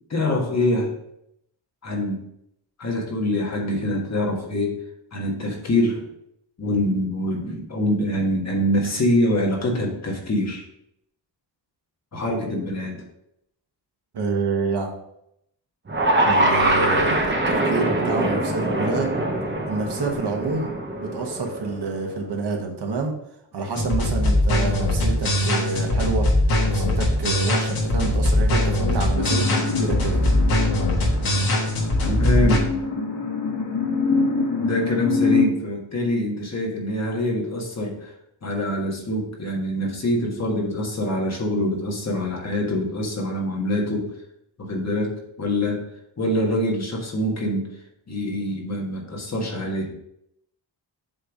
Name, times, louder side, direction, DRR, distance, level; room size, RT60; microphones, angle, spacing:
voice 1, 0.1-0.9 1.8-2.2 2.8-4.8 5.1-6.1 6.6-10.6 12.1-13.0 32.0-32.7 34.6-38.1 38.4-44.1 44.6-45.8 46.2-47.7 48.1-50.0, left 1 dB, 35° left, -1 dB, 1.5 m, -25 dB
voice 2, 14.1-14.9 16.3-19.1 19.7-20.7 21.0-23.1 23.5-26.3 26.6-30.3, right 4 dB, 60° right, 2 dB, 1.4 m, -28 dB
sound 1, 15.9-22.1, right 1 dB, 25° right, 0.8 m, -23 dB
sound 2, 23.8-32.6, left 1 dB, 55° left, 1.4 m, -21 dB
sound 3, 29.1-35.4, left 4 dB, 80° left, 1.6 m, -25 dB
7.8 x 3.3 x 5.0 m, 0.78 s
wide cardioid pair, 170°, 44 cm